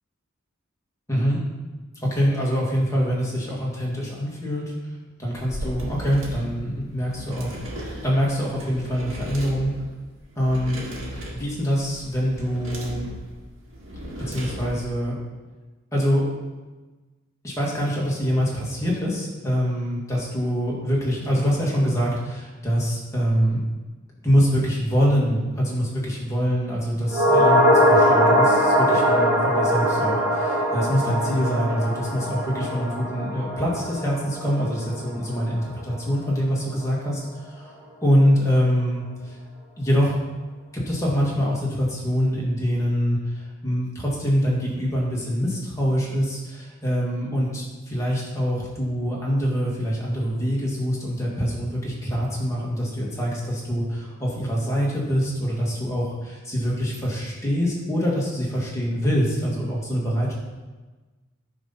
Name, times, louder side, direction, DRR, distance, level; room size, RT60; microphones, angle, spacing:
voice 1, 1.1-1.4 2.1-4.6 5.2-7.6 8.0-9.7 10.4-10.8 11.3-13.1 14.2-15.2 15.9-16.2 17.4-23.6 24.2-37.2 37.6-37.7 38.0-39.4 39.8-40.1 40.7-60.3, equal, 15° left, -4 dB, 1.9 m, -24 dB
sound 1, 5.4-15.0, equal, 70° right, 2.0 m, -36 dB
sound 2, 27.1-35.6 35.8-35.9, equal, 10° right, 1.9 m, -21 dB
9.6 x 4.0 x 5.8 m, 1.2 s
head